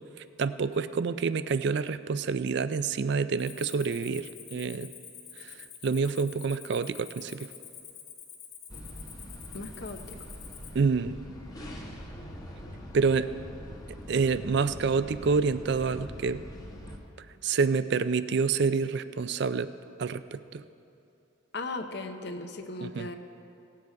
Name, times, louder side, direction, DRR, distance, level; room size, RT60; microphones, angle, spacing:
voice 1, 0.4-4.9 5.4-5.5 5.8-7.5 10.7-11.2 12.9-13.3 14.1-16.4 17.4-19.7 20.0-20.6 22.8-23.1, right 5 dB, 55° right, 13 dB, 0.4 m, -27 dB
Cricket, 3.4-10.8, left 7 dB, 85° left, 1.5 m, -47 dB
sound 1, 8.7-17.0, equal, 20° left, 1.2 m, -43 dB
voice 2, 9.5-10.2 21.5-23.2, left 2 dB, 55° left, 6 dB, 0.8 m, -37 dB
18.0 x 7.6 x 4.6 m, 2.6 s
head